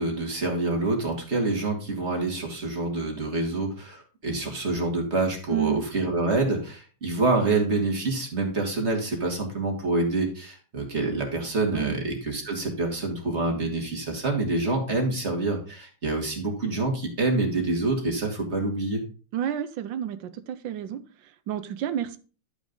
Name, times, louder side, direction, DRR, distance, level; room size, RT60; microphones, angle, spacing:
voice 1, 0.0-19.0, right 2 dB, 35° right, 2 dB, 2.6 m, -27 dB
voice 2, 5.5-5.8 11.7-11.9 19.3-22.2, right 10 dB, 85° right, 11 dB, 1.5 m, -30 dB
12.0 x 5.1 x 5.3 m, 0.36 s
omnidirectional pair, 2.0 m